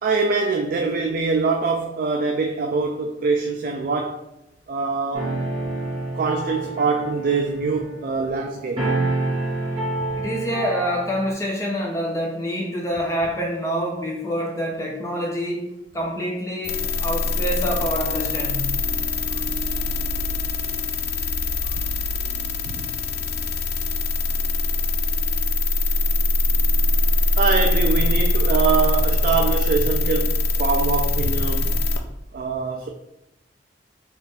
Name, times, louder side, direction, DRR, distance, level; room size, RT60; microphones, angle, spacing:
voice 1, 0.0-4.2 4.7-5.3 6.1-8.9 21.6-21.8 22.7-22.8 27.4-31.7 32.3-32.9, right 4 dB, 50° right, 0.3 m, -24 dB
sound 1, 5.1-11.3, right 2 dB, 30° right, 1.2 m, -28 dB
voice 2, 10.2-15.7 15.9-18.7, equal, 15° left, 0.8 m, -26 dB
sound 2, 16.6-32.0, left 2 dB, 60° left, 0.4 m, -22 dB
3.6 x 2.4 x 4.1 m
head